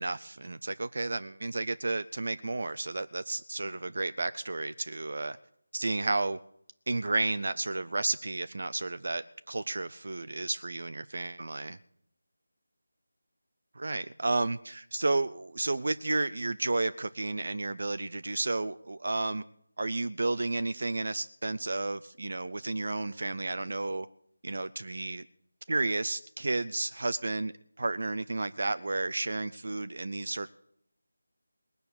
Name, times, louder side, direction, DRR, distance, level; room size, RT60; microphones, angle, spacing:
voice 1, 0.0-5.4 5.7-6.4 6.9-11.8 13.8-19.4 19.8-24.1 24.4-25.2 25.7-27.5 27.8-30.5, right 2 dB, 55° right, 13 dB, 0.6 m, -32 dB
19.5 x 6.8 x 9.7 m, 0.72 s
figure-of-eight pair, 160°, 0 cm